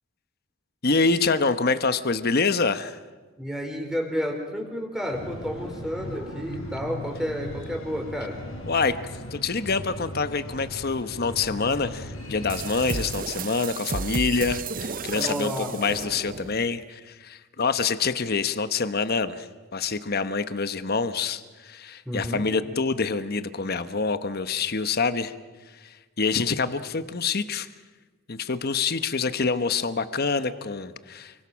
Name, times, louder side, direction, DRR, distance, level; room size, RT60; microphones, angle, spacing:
voice 1, 0.8-3.0 8.6-9.0 9.3-19.5 19.7-25.3 26.2-27.7 28.3-31.3, left 4 dB, 50° left, 11 dB, 1.0 m, -26 dB
voice 2, 3.4-8.4 15.1-15.8 22.1-22.4, equal, ahead, 2 dB, 4.5 m, -31 dB
Breathing, 5.1-13.1, left 1 dB, 80° left, 5.0 m, -38 dB
sound 1, 12.5-16.7, right 4 dB, 40° right, 0.7 m, -33 dB
29.0 x 24.0 x 6.3 m, 1.3 s
head